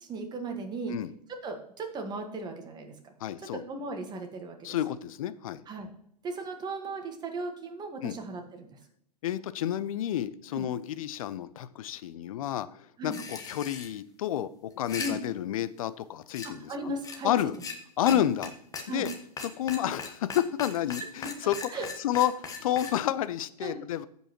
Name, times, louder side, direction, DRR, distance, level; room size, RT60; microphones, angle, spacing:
voice 1, 0.0-0.9 1.4-3.1 3.4-4.8 5.7-5.9 6.2-8.8 10.5-10.7 13.0-13.2 15.0-15.2 16.4-17.3 18.0-18.2 18.9-19.1 21.2-21.9 23.6-23.8, right 2 dB, 20° right, 4 dB, 1.5 m, -37 dB
voice 2, 3.2-3.6 4.6-5.6 8.0-8.2 9.2-12.7 13.0-14.5 14.8-16.7 17.2-17.5 18.0-18.5 18.9-19.1 19.4-21.6 22.0-22.3 22.6-24.1, left 11 dB, 55° left, 15 dB, 0.6 m, -30 dB
sound 1, 13.1-13.9 14.7-15.1 16.3-16.5 17.0-17.2 17.5-17.7 18.1-18.2 18.4-18.5 18.7-22.9, left 5 dB, 15° left, 1.2 m, -38 dB
14.5 x 5.4 x 3.0 m, 0.69 s
hypercardioid pair, 110°, 21 cm